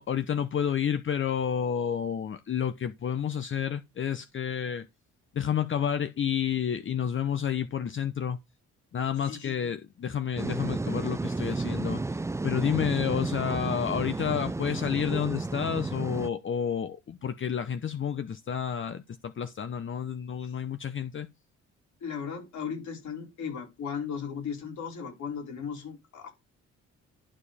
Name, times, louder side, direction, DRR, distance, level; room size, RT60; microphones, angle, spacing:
voice 1, 0.0-4.9 5.3-8.4 8.9-12.0 12.4-21.3, left 8 dB, 40° left, 0.8 m, -30 dB
voice 2, 9.2-9.7 20.4-20.5 22.0-26.3, left 7 dB, 70° left, 4.9 m, -36 dB
sound 1, 10.4-16.3, right 3 dB, 10° right, 0.4 m, -32 dB
11.5 x 4.9 x 4.2 m
cardioid pair, 90°, 30 cm